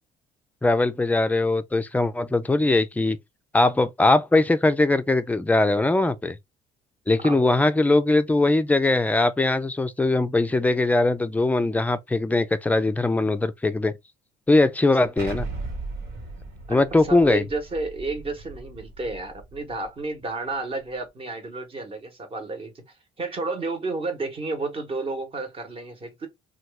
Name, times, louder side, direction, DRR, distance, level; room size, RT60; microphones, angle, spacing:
voice 1, 0.6-3.2 3.5-6.4 7.1-14.0 14.5-15.5 16.7-17.4, left 2 dB, 10° left, 0.4 m, -21 dB
Explosion, 15.2-19.9, right 3 dB, 80° right, 1.6 m, -37 dB
voice 2, 16.7-22.7 23.2-26.3, right 3 dB, 35° right, 1.1 m, -31 dB
2.9 x 2.3 x 3.3 m
cardioid pair, 110°, 17 cm